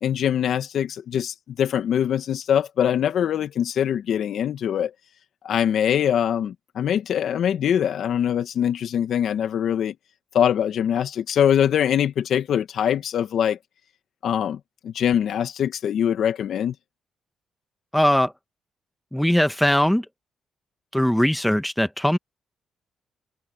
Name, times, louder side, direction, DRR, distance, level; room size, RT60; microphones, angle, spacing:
voice 1, 0.0-4.9 5.4-9.9 10.3-13.6 14.2-16.7, left 9 dB, 70° left, 1.8 m, -23 dB
voice 2, 17.9-18.3 19.1-20.0 20.9-22.2, equal, 5° left, 1.5 m, -20 dB
supercardioid pair, 65°, 0 cm